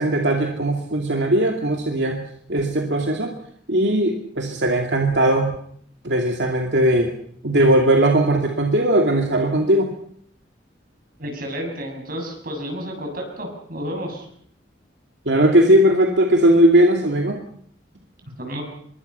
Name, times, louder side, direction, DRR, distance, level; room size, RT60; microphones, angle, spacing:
voice 1, 0.0-2.2 2.5-3.3 3.7-5.5 6.0-7.1 7.4-9.9 15.3-17.4, right 1 dB, 70° right, 2 dB, 2.5 m, -18 dB
voice 2, 11.2-14.3 18.4-18.6, equal, 55° right, 3 dB, 7.2 m, -31 dB
25.0 x 22.5 x 5.6 m, 0.64 s
head